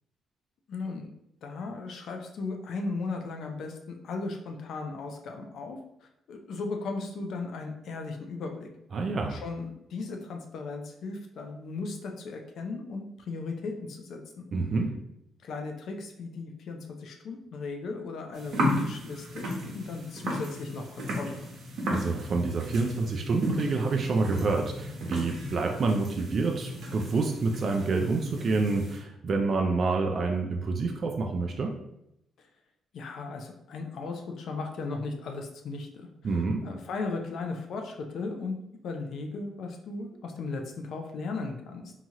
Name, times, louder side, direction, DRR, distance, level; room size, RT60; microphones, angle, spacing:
voice 1, 0.7-1.1 1.4-5.8 6.3-8.7 9.3-14.5 15.4-21.4 32.9-36.1 36.6-38.6 38.8-41.8, left 3 dB, 70° left, 4 dB, 0.5 m, -36 dB
voice 2, 8.9-9.3 14.5-14.9 21.9-31.7 36.2-36.6, right 3 dB, 50° right, 3 dB, 0.3 m, -27 dB
sound 1, 18.3-29.0, equal, 75° right, 0.9 m, -34 dB
2.8 x 2.3 x 2.8 m, 0.80 s
cardioid pair, 90°, 0 cm